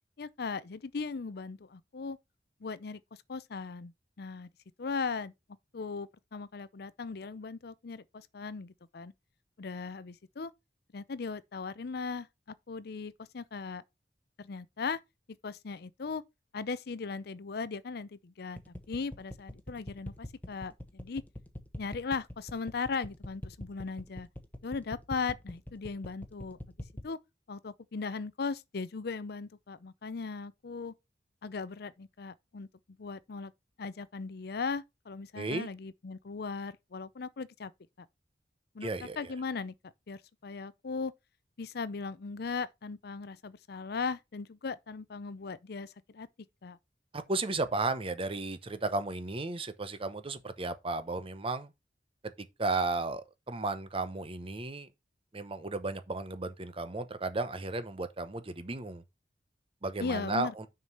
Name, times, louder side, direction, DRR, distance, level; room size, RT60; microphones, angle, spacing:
voice 1, 0.2-2.2 2.6-3.0 3.3-3.9 4.2-4.5 4.8-5.3 5.7-9.1 9.6-10.5 10.9-12.3 12.7-13.8 14.4-15.0 15.4-16.2 16.5-21.2 21.8-24.3 24.6-26.6 27.0-27.2 27.5-30.9 31.4-32.7 33.0-33.5 33.8-37.7 38.7-38.9 39.2-41.1 41.6-46.3 46.6-46.8 60.0-60.5, left 4 dB, 60° left, 0.5 m, -38 dB
sound 1, 18.6-27.1, left 1 dB, 10° left, 1.1 m, -42 dB
voice 2, 35.3-35.7 38.8-39.3 47.1-51.7 52.4-54.9 55.3-59.0 59.8-60.7, right 3 dB, 30° right, 0.9 m, -34 dB
6.5 x 4.7 x 5.4 m
head